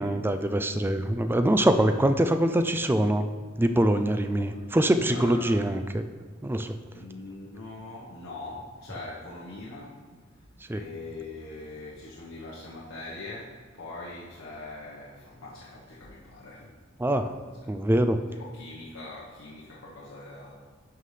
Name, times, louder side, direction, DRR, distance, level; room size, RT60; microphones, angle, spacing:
voice 1, 0.0-3.3 3.6-6.0 6.4-6.7 10.7-10.8 17.0-17.4 17.7-18.2, right 1 dB, 10° right, 8 dB, 0.3 m, -24 dB
voice 2, 5.1-5.6 6.9-16.7 17.2-17.9 18.3-20.5, left 2 dB, 80° left, -5 dB, 1.2 m, -42 dB
11.0 x 5.8 x 3.3 m, 1.5 s
head